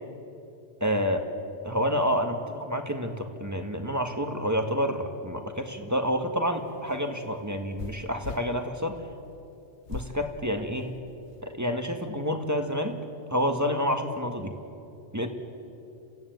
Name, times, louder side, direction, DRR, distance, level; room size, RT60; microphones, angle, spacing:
voice 1, 0.8-1.2 1.7-9.0 9.9-11.0 11.4-13.0 13.3-14.5 15.1-15.3, equal, 15° right, 5 dB, 1.7 m, -28 dB
sound 1, 6.5-8.5 9.9-10.2 10.8-11.4, left 5 dB, 80° left, 1.5 m, -40 dB
28.5 x 16.0 x 9.3 m, 2.6 s
omnidirectional pair, 1.2 m